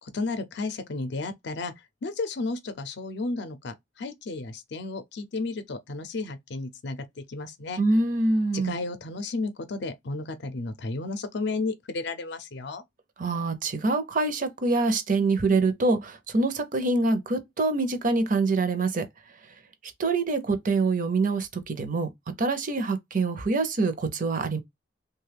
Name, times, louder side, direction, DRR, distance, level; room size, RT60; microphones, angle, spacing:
voice 1, 0.0-1.7 2.0-7.8 8.5-12.8, left 3 dB, 65° left, 0.5 m, -33 dB
voice 2, 7.8-8.7 13.2-19.0 20.0-22.1 22.4-24.6, right 3 dB, 45° right, 0.6 m, -25 dB
3.0 x 2.3 x 3.3 m
head